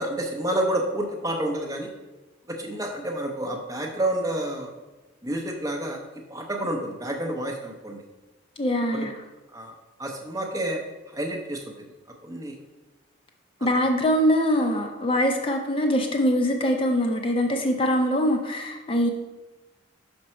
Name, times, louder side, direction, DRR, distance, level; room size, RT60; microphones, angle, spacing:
voice 1, 0.0-1.9 2.5-4.7 5.2-6.0 6.3-8.0 8.9-9.1 9.5-9.7 10.0-10.8 11.1-11.9 12.2-12.5 13.6-13.7, right 1 dB, 15° right, 2 dB, 0.7 m, -29 dB
voice 2, 8.6-9.1 13.6-19.1, equal, 25° left, 3 dB, 0.6 m, -23 dB
5.9 x 5.3 x 4.3 m, 1.1 s
head